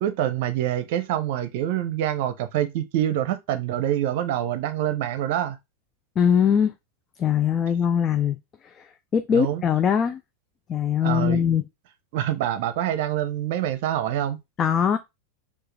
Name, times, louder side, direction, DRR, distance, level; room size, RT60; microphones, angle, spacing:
voice 1, 0.0-5.6 9.3-9.6 11.0-11.4 12.1-14.4, right 11 dB, 60° right, 0.6 m, -26 dB
voice 2, 6.2-6.7 7.2-8.4 8.8-10.2 10.7-11.6 14.6-15.0, left 8 dB, 30° left, 0.4 m, -21 dB
4.6 x 2.4 x 3.2 m
hypercardioid pair, 105°, 0 cm